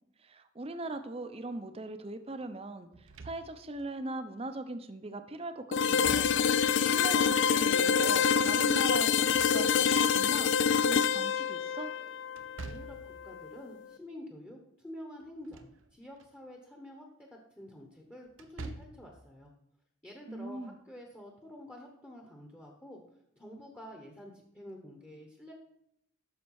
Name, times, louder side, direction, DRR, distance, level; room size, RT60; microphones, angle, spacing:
voice 1, 0.2-10.5 10.8-11.9 20.3-20.8, right 2 dB, 30° right, 9 dB, 0.6 m, -40 dB
Slam / Thump thud, 2.9-3.8 5.8-6.7 9.0-10.0 12.4-13.2 15.2-15.8 16.2-16.3 18.3-19.1, right 3 dB, 90° right, 0.8 m, -46 dB
sound 1, 5.7-13.5, left 7 dB, 65° left, 0.4 m, -27 dB
voice 2, 12.6-19.5 20.0-23.0 23.3-25.5, left 1 dB, 10° left, 1 dB, 1.0 m, -48 dB
9.5 x 6.5 x 4.7 m, 0.76 s
head